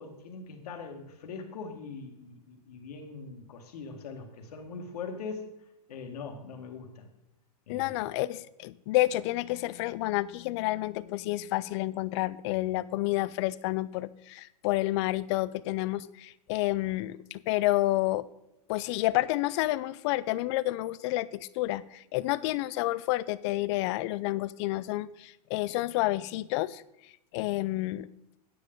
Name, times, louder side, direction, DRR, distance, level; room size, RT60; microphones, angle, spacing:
voice 1, 0.0-5.5 5.9-7.1 7.7-8.0, left 4 dB, 70° left, 4 dB, 1.9 m, -41 dB
voice 2, 7.7-18.2 18.7-26.8 27.3-28.1, left 17 dB, 45° left, 18 dB, 0.4 m, -29 dB
9.4 x 9.1 x 3.8 m, 0.87 s
hypercardioid pair, 130°, 20 cm